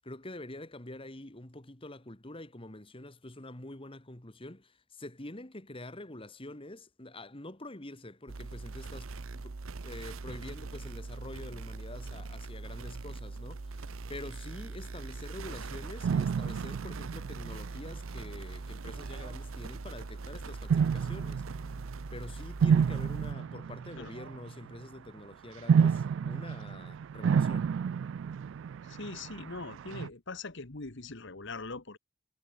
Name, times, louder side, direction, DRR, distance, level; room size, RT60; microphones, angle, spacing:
voice 1, 0.0-9.6 9.8-21.7 22.1-27.7, left 1 dB, 25° left, 1.9 m, -46 dB
sound 1, 8.3-23.3, right 3 dB, 80° right, 0.8 m, -42 dB
sound 2, 16.0-18.3 19.0-19.3 20.7-24.8 25.7-30.1, right 6 dB, 65° right, 0.3 m, -30 dB
voice 2, 28.9-32.0, left 3 dB, 60° left, 1.6 m, -41 dB
head